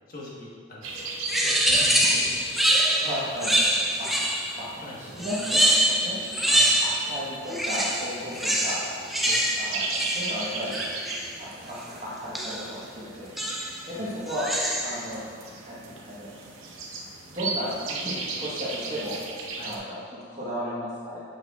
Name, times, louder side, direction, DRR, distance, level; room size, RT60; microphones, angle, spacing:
voice 1, 0.1-1.0 1.4-2.3 4.8-5.3 6.4-6.8 9.2-9.4 13.9-14.0 19.6-19.8, left 1 dB, 45° left, -5 dB, 1.3 m, -42 dB
sound 1, 0.8-19.8, right 3 dB, 85° right, 0.8 m, -37 dB
sound 2, 1.3-4.6 5.2-7.2 7.5-11.3 12.3-12.7 13.4-13.8 14.3-15.1, right 1 dB, ahead, 0.4 m, -25 dB
voice 2, 3.0-3.5 4.0-4.1 4.6-4.7 5.0-6.2 6.8-8.8 9.6-10.8 11.4-13.3 13.9-14.5 14.8-15.2 15.7-16.3 17.3-19.2 19.6-21.2, equal, 35° right, -8 dB, 1.2 m, -34 dB
7.5 x 6.1 x 2.4 m, 2.1 s
head